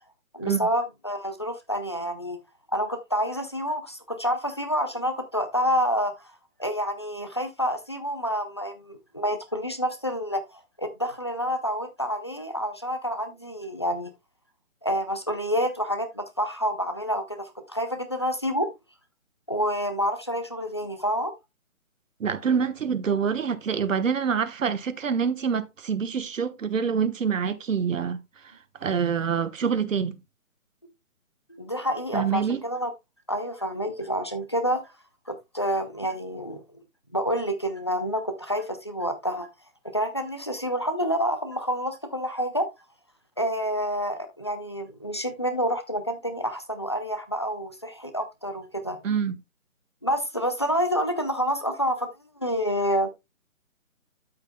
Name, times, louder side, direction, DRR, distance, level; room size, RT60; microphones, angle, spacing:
voice 1, 0.3-2.4 2.7-6.3 6.6-14.1 14.8-18.7 19.5-21.3 31.5-32.9 33.3-34.8 35.3-36.6 37.1-39.5 39.9-42.7 43.4-49.0 50.0-52.1 52.4-53.1, equal, 20° left, 0.5 m, -28 dB
voice 2, 22.2-28.2 28.8-30.2 32.1-32.6 49.0-49.4, right 6 dB, 65° right, 1.2 m, -26 dB
12.5 x 5.9 x 2.2 m
hypercardioid pair, 165°, 41 cm